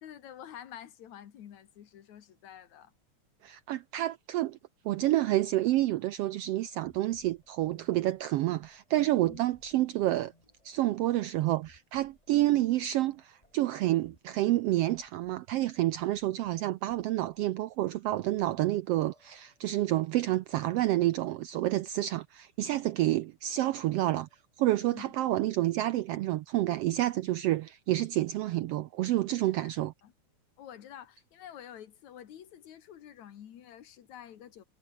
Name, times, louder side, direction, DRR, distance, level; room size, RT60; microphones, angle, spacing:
voice 1, 0.0-2.9 9.2-9.4 24.8-25.1 29.5-29.7 30.0-30.1 30.6-34.6, left 10 dB, 75° left, 3.0 m, -48 dB
voice 2, 3.4-4.6 4.8-10.3 10.6-24.3 24.6-29.9, right 15 dB, 80° right, 1.4 m, -29 dB
sound 1, 6.4-14.3 14.9-15.4 16.1-17.5 17.9-18.7 19.1-19.9 21.5-22.3 23.9-24.7, left 1 dB, 10° left, 6.7 m, -66 dB
omnidirectional pair, 3.3 m